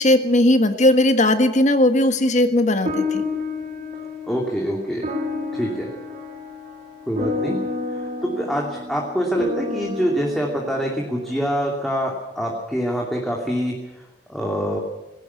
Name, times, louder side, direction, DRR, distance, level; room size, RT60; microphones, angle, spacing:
voice 1, 0.0-3.2, left 1 dB, 45° left, 8 dB, 1.5 m, -17 dB
sound 1, 2.8-11.5, left 3 dB, 40° right, 3.2 m, -30 dB
voice 2, 4.3-5.1 5.5-5.9 7.1-7.6 7.9-13.7 14.3-14.8, equal, ahead, -1 dB, 2.8 m, -25 dB
20.5 x 17.0 x 8.3 m, 1.0 s
head